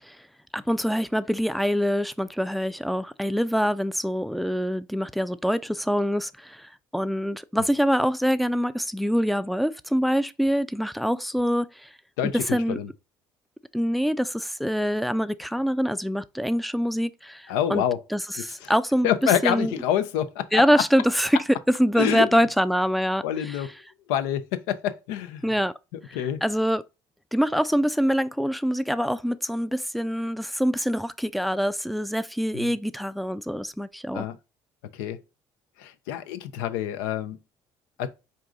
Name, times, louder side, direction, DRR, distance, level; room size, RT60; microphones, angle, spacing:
voice 1, 0.5-11.9 12.3-12.8 13.7-17.8 18.1-19.1 19.4-19.7 20.5-23.6 25.4-25.7 26.4-26.8 27.3-34.3, equal, ahead, 0.4 m, -25 dB
voice 2, 12.2-12.9 17.5-18.0 18.4-18.7 19.0-20.6 22.0-22.3 23.2-23.7 24.1-25.4 25.9-26.4 32.5-32.7 34.1-34.4 34.9-35.2 35.8-37.4 38.0-38.1, left 10 dB, 85° left, 0.5 m, -27 dB
4.6 x 2.6 x 3.6 m
supercardioid pair, 70°, 10 cm